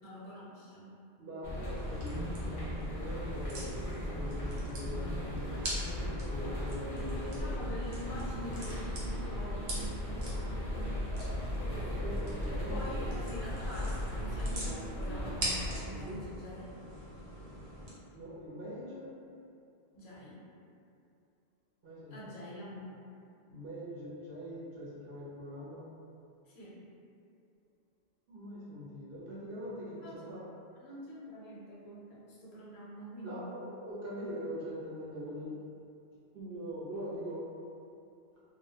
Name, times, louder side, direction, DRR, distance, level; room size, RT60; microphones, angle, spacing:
voice 1, 0.0-0.9 6.9-10.9 12.5-16.7 19.9-20.4 22.1-22.9 26.5-26.8 30.0-30.2 30.8-33.4, equal, 75° left, -7 dB, 0.9 m, -45 dB
voice 2, 1.2-5.5 6.1-7.4 11.5-13.0 15.9-16.2 18.1-19.1 21.8-22.4 23.5-25.8 28.3-30.4 33.2-35.5 36.3-37.5, equal, 60° right, -9 dB, 0.8 m, -43 dB
sound 1, 1.4-15.8, left 1 dB, 50° left, 0.4 m, -37 dB
sound 2, 1.8-17.9, right 1 dB, 85° right, 0.9 m, -44 dB
2.3 x 2.0 x 2.7 m, 2.5 s
omnidirectional pair, 1.1 m